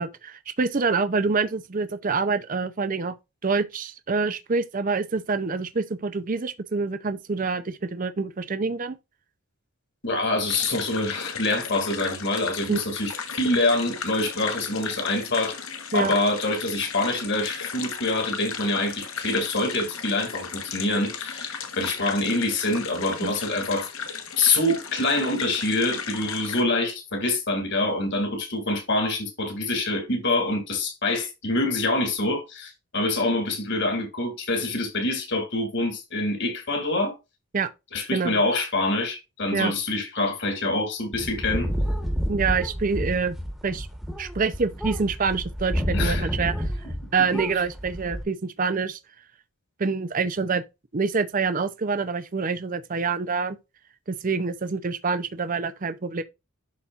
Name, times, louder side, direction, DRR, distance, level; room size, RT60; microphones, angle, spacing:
voice 1, 0.0-3.1 3.4-9.0 12.7-12.8 15.9-16.2 23.2-23.3 37.5-37.7 38.1-38.4 39.5-39.7 42.3-43.4 43.6-43.9 44.2-46.7 47.1-49.0 49.8-50.6 50.9-53.6 54.1-56.2, right 4 dB, 35° right, 0.5 m, -26 dB
voice 2, 10.0-15.6 15.9-23.9 24.4-37.1 37.9-41.7 45.9-46.3, left 2 dB, 50° left, 2.3 m, -25 dB
sound 1, 10.5-26.6, left 6 dB, 70° left, 1.3 m, -36 dB
sound 2, 41.1-47.1 47.3-48.2, equal, ahead, 1.2 m, -29 dB
11.5 x 4.2 x 2.5 m
head